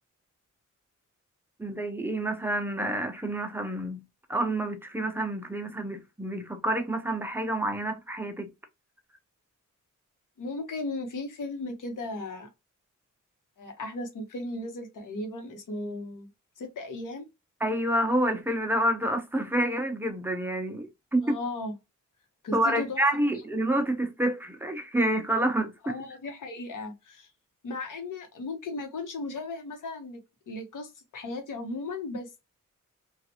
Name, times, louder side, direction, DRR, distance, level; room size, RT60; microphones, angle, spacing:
voice 1, 1.6-4.0 4.3-8.5 17.6-21.3 22.5-26.0, right 1 dB, 5° right, 0.5 m, -28 dB
voice 2, 10.4-12.5 13.6-16.3 16.6-17.3 21.2-21.7 22.4-23.0 25.8-27.3 27.6-30.2 30.5-32.3, left 2 dB, 90° left, 1.1 m, -36 dB
3.1 x 2.4 x 2.9 m
wide cardioid pair, 160°, 31 cm